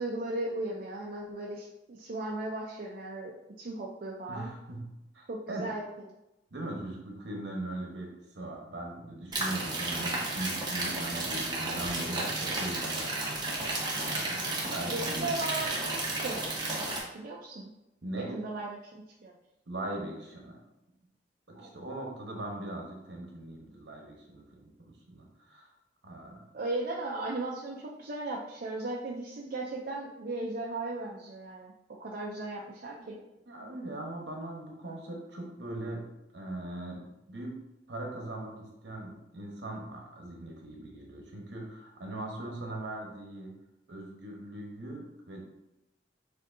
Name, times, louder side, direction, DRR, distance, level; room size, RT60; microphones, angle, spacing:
voice 1, 0.0-4.5 5.3-5.8 14.9-16.8 17.1-17.7 18.2-19.3 21.5-21.7 26.5-31.7 32.0-33.2, right 2 dB, 50° right, -2 dB, 0.5 m, -36 dB
voice 2, 4.3-4.9 5.1-5.7 6.5-13.1 13.4-15.4 18.0-18.4 19.7-20.6 21.5-25.7 26.0-26.4 33.0-33.1 33.5-36.0 36.3-37.6 37.9-43.5 43.9-45.4, right 1 dB, 70° right, 0 dB, 1.1 m, -40 dB
sound 1, 9.3-17.0, right 2 dB, 25° right, 0.9 m, -33 dB
6.6 x 2.7 x 2.6 m, 0.90 s
head